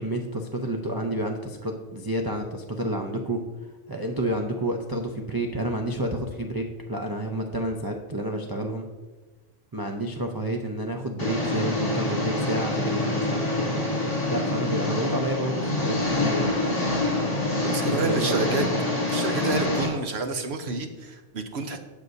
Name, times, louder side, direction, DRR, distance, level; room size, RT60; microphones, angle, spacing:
voice 1, 0.0-3.4 3.9-8.9 9.7-13.8 14.3-17.0 17.8-18.7, right 1 dB, 25° right, 1 dB, 0.5 m, -30 dB
Engine, 11.2-19.9, left 2 dB, 50° left, 3.1 m, -26 dB
voice 2, 17.6-18.7 19.1-21.8, right 3 dB, 60° right, 6 dB, 1.0 m, -29 dB
17.5 x 6.4 x 2.7 m, 1.3 s
omnidirectional pair, 1.3 m